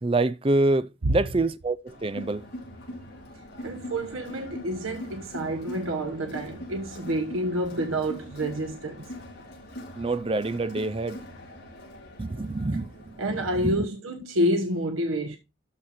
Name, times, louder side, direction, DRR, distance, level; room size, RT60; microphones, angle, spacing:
voice 1, 0.0-2.4 10.0-11.2 12.2-13.8, right 2 dB, 25° right, 0.5 m, -26 dB
Crowd, 1.9-13.4, equal, 55° left, 5.2 m, -42 dB
voice 2, 3.6-9.0 13.2-15.4, equal, 90° right, 1.2 m, -28 dB
12.5 x 4.6 x 4.3 m
head